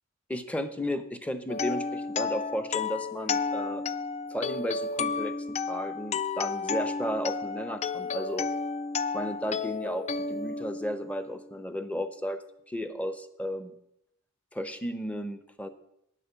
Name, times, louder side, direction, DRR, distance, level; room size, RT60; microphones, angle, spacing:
voice 1, 0.3-3.8 4.3-8.5 9.1-12.4 12.7-13.7 14.5-15.7, equal, 5° left, 10 dB, 0.7 m, -34 dB
sound 1, 1.5-11.4, left 5 dB, 30° left, 0.3 m, -32 dB
9.6 x 8.4 x 6.8 m, 0.78 s
head